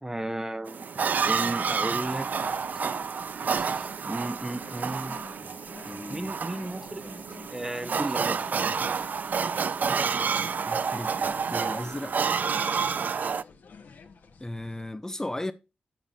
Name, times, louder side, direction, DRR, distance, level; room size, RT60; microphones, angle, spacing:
voice 1, 0.0-0.8 1.2-2.3 2.7-2.9 3.5-5.2 6.1-8.4, right 1 dB, 15° right, 0.8 m, -34 dB
sound 1, 0.7-13.4, right 6 dB, 65° right, 0.4 m, -29 dB
sound 2, 1.1-14.9, left 5 dB, 80° left, 1.1 m, -52 dB
voice 2, 5.8-6.3 10.7-12.2 14.4-15.5, left 1 dB, 15° left, 0.6 m, -36 dB
8.8 x 7.5 x 2.6 m
cardioid pair, 55°, 3 cm